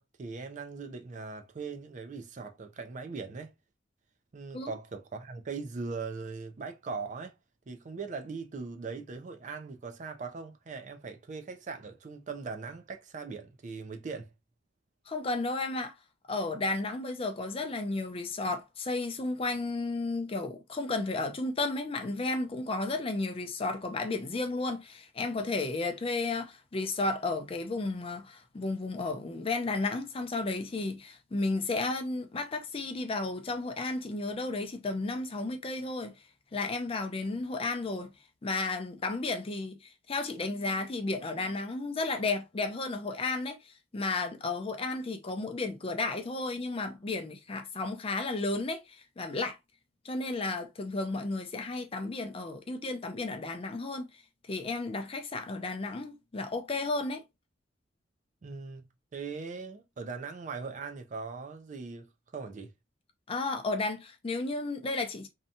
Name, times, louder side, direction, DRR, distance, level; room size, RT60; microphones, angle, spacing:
voice 1, 0.0-3.5 4.3-7.3 7.7-14.3 58.4-62.7, right 4 dB, 40° right, 0.4 m, -40 dB
voice 2, 15.1-15.9 16.3-36.1 36.5-38.1 38.4-49.6 50.0-54.1 54.5-57.2 63.3-65.3, left 3 dB, 30° left, 0.4 m, -33 dB
2.7 x 2.2 x 2.6 m
head